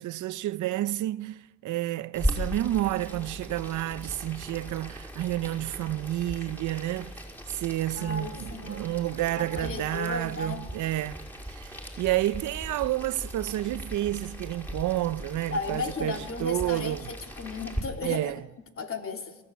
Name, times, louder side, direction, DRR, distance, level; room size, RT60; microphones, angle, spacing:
voice 1, 0.0-17.1 18.0-18.4, right 15 dB, 75° right, 0.7 m, -30 dB
Boiling, 2.1-17.8, equal, 5° left, 5.1 m, -38 dB
voice 2, 7.9-8.8 9.4-10.6 15.5-18.3 18.8-19.4, left 4 dB, 45° left, 2.9 m, -35 dB
23.5 x 16.5 x 8.2 m
cardioid pair, 90°, 30 cm